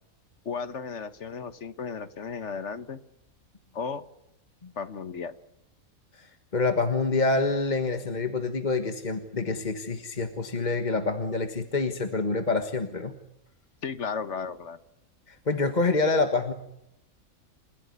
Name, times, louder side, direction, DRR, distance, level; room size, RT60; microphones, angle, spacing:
voice 1, 0.4-3.0 3.7-4.0 4.8-5.3 13.8-14.8, left 5 dB, 55° left, 13 dB, 1.4 m, -34 dB
voice 2, 6.1-13.1 15.3-16.5, left 3 dB, 30° left, 7 dB, 1.6 m, -27 dB
29.5 x 15.5 x 9.6 m, 0.83 s
omnidirectional pair, 1.5 m